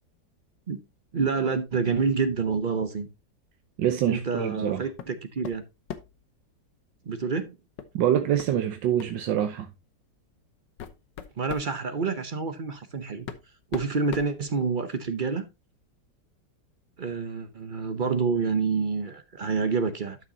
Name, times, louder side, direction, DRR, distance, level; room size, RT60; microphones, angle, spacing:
voice 1, 1.1-3.1 4.1-5.6 7.1-7.5 11.4-13.3 13.7-15.4 17.0-20.2, right 5 dB, 50° right, 0.6 m, -28 dB
voice 2, 3.8-4.9 7.9-9.7, right 10 dB, 85° right, 1.5 m, -25 dB
sound 1, 5.0-5.2 5.4-6.2 7.8-7.9 8.4-8.5 9.0-9.2 10.0-10.1 10.6-11.7 12.8-12.9 13.3-15.0, left 8 dB, 80° left, 1.6 m, -40 dB
12.0 x 6.2 x 2.8 m
omnidirectional pair, 1.9 m